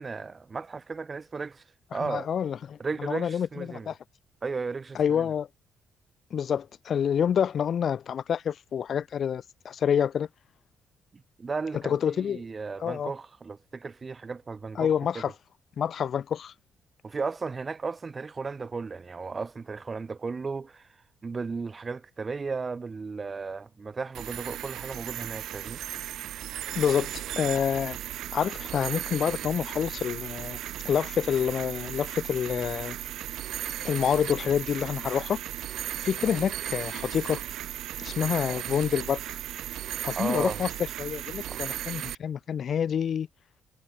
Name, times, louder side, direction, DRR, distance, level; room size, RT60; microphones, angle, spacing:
voice 1, 0.0-1.6 1.9-2.3 2.8-3.9 4.4-5.3 11.4-15.2 17.0-20.9 21.2-25.8 40.1-40.6 41.5-41.6, right 4 dB, 30° right, 1.3 m, -35 dB
voice 2, 2.0-4.0 4.9-5.5 6.3-10.3 11.8-12.5 12.8-13.1 14.8-15.3 15.8-16.5 26.7-28.0 28.3-30.6 30.8-33.0 33.8-35.4 36.0-37.4 38.0-39.2 40.0-40.7 41.0-43.3, left 8 dB, 55° left, 0.5 m, -27 dB
sound 1, 24.1-42.1, right 12 dB, 80° right, 4.2 m, -36 dB
cardioid pair, 90°, 0 cm